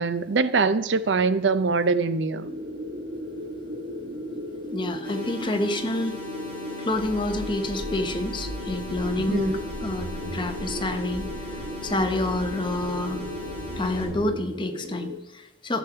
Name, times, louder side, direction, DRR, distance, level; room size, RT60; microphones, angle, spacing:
voice 1, 0.0-2.5 9.3-9.6, right 4 dB, 80° right, 14 dB, 0.6 m, -23 dB
sound 1, 2.4-15.2, left 1 dB, 50° right, 1.5 m, -36 dB
voice 2, 4.7-6.2 6.8-13.2 13.8-15.8, left 2 dB, 25° left, 6 dB, 0.9 m, -28 dB
sound 2, 5.0-14.0, left 2 dB, 10° left, 3.4 m, -40 dB
sound 3, 6.9-14.2, equal, 25° right, 5.0 m, -39 dB
13.0 x 7.3 x 5.7 m, 1.0 s
head